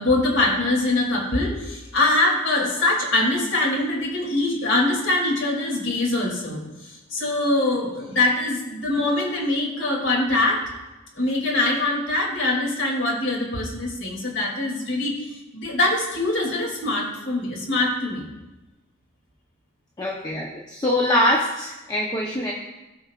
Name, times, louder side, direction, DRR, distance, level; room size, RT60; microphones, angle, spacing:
voice 1, 0.0-10.6 11.2-18.2, left 2 dB, 70° left, -1 dB, 2.7 m, -23 dB
voice 2, 20.0-22.5, left 1 dB, 20° left, -2 dB, 0.9 m, -23 dB
16.0 x 6.2 x 2.5 m, 1.1 s
head